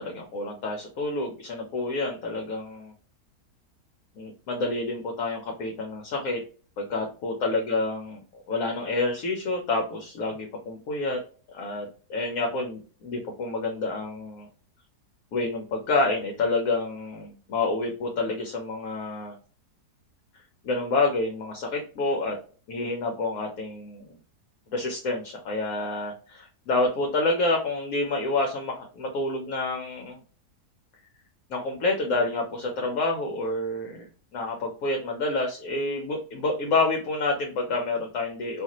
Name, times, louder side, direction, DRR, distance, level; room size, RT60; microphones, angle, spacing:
voice 1, 0.0-2.9 4.2-6.4 6.8-8.2 8.5-11.2 11.5-14.5 15.3-19.4 20.6-22.4 22.7-24.1 24.7-30.2 31.5-34.1 34.3-38.6, left 2 dB, 65° left, 1 dB, 1.0 m, -28 dB
2.7 x 2.5 x 2.8 m, 0.38 s
omnidirectional pair, 1.7 m